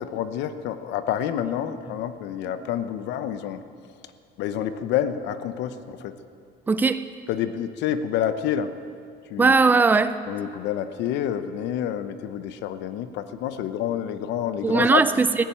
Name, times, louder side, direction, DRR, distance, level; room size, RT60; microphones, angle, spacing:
voice 1, 0.0-3.6 4.4-6.1 7.3-8.7 9.3-9.5 10.3-15.0, left 10 dB, 60° left, 11 dB, 0.8 m, -28 dB
voice 2, 6.7-7.0 9.4-10.2 14.6-15.5, right 4 dB, 10° right, 12 dB, 0.3 m, -19 dB
15.5 x 10.5 x 8.8 m, 2.4 s
cardioid pair, 180°, 20 cm